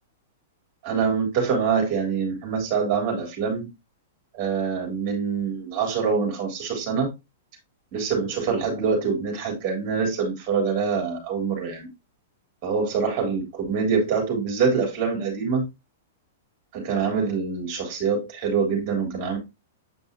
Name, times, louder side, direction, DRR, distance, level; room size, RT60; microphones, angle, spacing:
voice 1, 0.8-3.7 4.3-7.1 7.9-11.9 12.6-15.6 16.7-19.4, right 5 dB, 35° right, 3.5 m, -25 dB
8.0 x 5.3 x 2.8 m
figure-of-eight pair, 105°, 0 cm